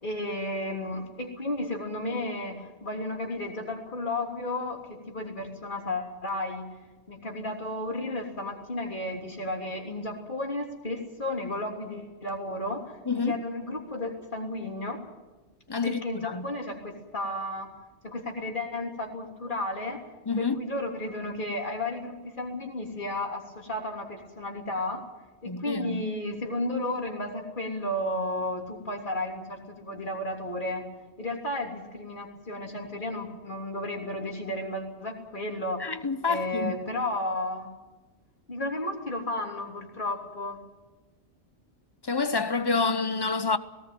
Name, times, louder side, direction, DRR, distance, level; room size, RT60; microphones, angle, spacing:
voice 1, 0.0-6.7 7.1-15.0 15.8-17.7 18.0-20.0 20.4-25.0 25.4-30.8 31.2-35.9 36.3-37.7 38.5-40.6, left 1 dB, 45° left, 3.4 m, -33 dB
voice 2, 13.1-13.4 15.7-16.5 20.3-20.6 25.5-26.0 35.8-36.8 42.0-43.6, left 4 dB, 25° left, 0.8 m, -28 dB
18.5 x 18.0 x 9.3 m
omnidirectional pair, 1.2 m